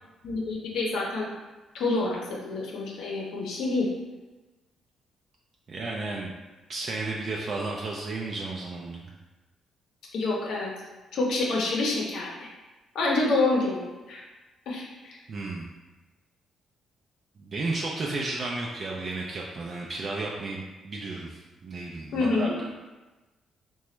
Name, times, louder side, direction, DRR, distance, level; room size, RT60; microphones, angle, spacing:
voice 1, 0.2-1.3 1.7-3.9 10.1-10.7 11.1-12.5 12.9-14.2 14.7-15.2 22.1-22.5, left 2 dB, 80° left, -3 dB, 0.6 m, -27 dB
voice 2, 5.7-6.3 6.7-9.1 15.3-15.7 17.4-22.7, right 3 dB, 50° right, -2 dB, 0.3 m, -33 dB
2.9 x 2.2 x 3.1 m, 1.2 s
cardioid pair, 90°, 0 cm